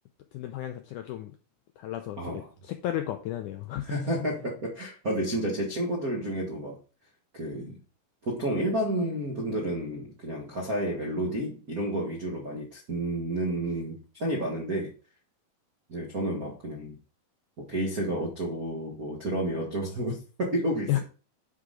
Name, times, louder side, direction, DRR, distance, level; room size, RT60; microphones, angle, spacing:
voice 1, 0.3-1.4 1.8-3.8 20.9-21.0, left 13 dB, 85° left, 6 dB, 1.8 m, -33 dB
voice 2, 3.8-6.8 7.3-7.8 8.2-14.9 15.9-17.0 17.6-21.0, right 1 dB, 60° right, -2 dB, 0.9 m, -30 dB
9.7 x 4.9 x 3.8 m, 0.36 s
omnidirectional pair, 4.3 m